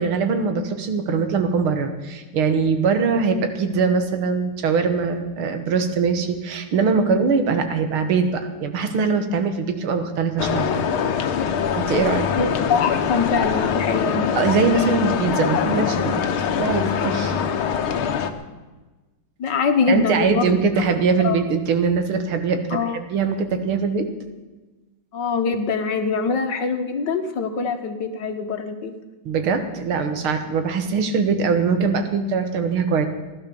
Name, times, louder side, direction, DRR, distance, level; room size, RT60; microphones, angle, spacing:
voice 1, 0.0-10.7 11.8-12.3 14.4-16.2 16.6-17.4 19.9-22.8 23.1-24.1 29.3-33.1, right 5 dB, 85° right, 7 dB, 2.3 m, -22 dB
sound 1, 10.4-18.3, left 7 dB, 85° left, 1.9 m, -23 dB
voice 2, 12.3-14.4 19.4-20.5 21.2-21.4 22.7-23.0 25.1-28.9, left 5 dB, 60° left, 6 dB, 1.8 m, -23 dB
15.5 x 11.0 x 7.0 m, 1.2 s
omnidirectional pair, 2.3 m